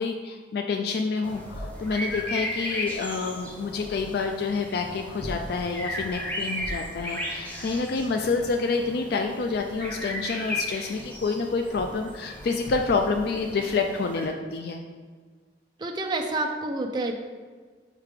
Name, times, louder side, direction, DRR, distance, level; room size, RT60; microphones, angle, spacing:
voice 1, 0.0-14.8, left 4 dB, 55° left, 4 dB, 0.3 m, -28 dB
sound 1, 1.2-14.3, left 1 dB, 10° left, 0.9 m, -35 dB
voice 2, 15.8-17.2, right 2 dB, 25° right, 2 dB, 0.4 m, -28 dB
5.6 x 3.5 x 4.8 m, 1.5 s
head